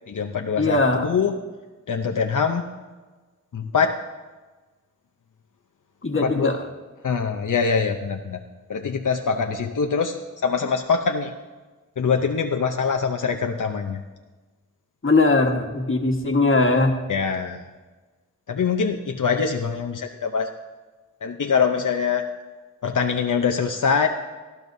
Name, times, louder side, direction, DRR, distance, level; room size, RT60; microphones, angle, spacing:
voice 1, 0.1-1.4 1.9-2.7 3.5-3.9 6.2-6.5 7.0-8.4 8.7-10.2 10.4-11.3 12.0-14.0 17.1-17.6 18.5-20.5 21.2-22.2 22.8-24.1, left 6 dB, 75° left, 4 dB, 0.7 m, -23 dB
voice 2, 0.6-1.1 6.0-6.6 15.0-16.9, left 3 dB, 40° left, 3 dB, 1.5 m, -20 dB
18.5 x 13.5 x 2.7 m, 1.3 s
wide cardioid pair, 85°, 31 cm